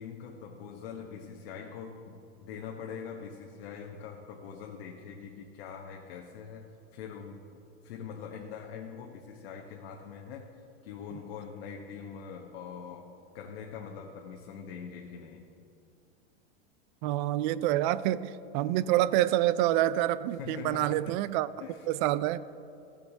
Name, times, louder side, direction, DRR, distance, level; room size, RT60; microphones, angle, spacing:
voice 1, 0.0-10.5 10.8-15.5 20.3-21.2 21.6-21.9, left 6 dB, 70° left, 1.0 m, -43 dB
voice 2, 17.0-21.5 21.9-22.4, right 14 dB, 50° right, 0.4 m, -27 dB
15.5 x 7.1 x 3.8 m
supercardioid pair, 125°, 32 cm